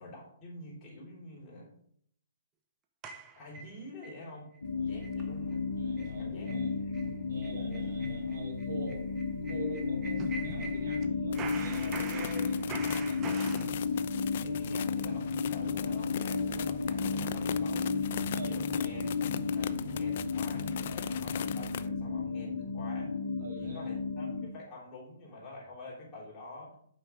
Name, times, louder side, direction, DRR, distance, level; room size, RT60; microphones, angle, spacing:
voice 1, 0.0-1.7 3.3-4.5 4.8-5.7 6.2-7.2 13.8-14.0 14.4-18.0 18.4-19.1 19.5-23.1 23.5-26.8, left 2 dB, 25° left, -5 dB, 3.2 m, -48 dB
sound 1, 3.0-4.2 4.5-4.6 5.0-5.2 5.5-5.6 6.0-6.1 6.5-6.6 6.9-7.1 7.4-11.1 11.3-13.7, right 5 dB, 25° right, 0.7 m, -43 dB
sound 2, 4.6-24.5, left 4 dB, 85° left, 1.0 m, -33 dB
voice 2, 5.7-6.8 7.2-9.0 9.5-12.6 13.0-13.5 18.3-19.1 23.4-23.9, right 3 dB, 65° right, -2 dB, 3.0 m, -45 dB
sound 3, 11.3-21.9, left 10 dB, 55° left, 0.3 m, -41 dB
5.7 x 5.0 x 4.9 m, 0.66 s
hypercardioid pair, 135°, 0 cm